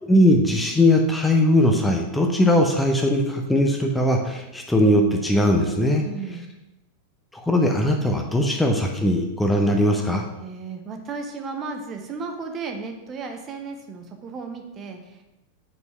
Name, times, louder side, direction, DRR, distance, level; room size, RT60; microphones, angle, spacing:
voice 1, 0.0-6.0 7.3-10.2, left 1 dB, 5° left, 2 dB, 0.7 m, -20 dB
voice 2, 6.0-6.4 10.4-15.2, right 4 dB, 30° right, 4 dB, 0.9 m, -34 dB
5.3 x 4.7 x 5.6 m, 0.95 s
figure-of-eight pair, 90°, 0 cm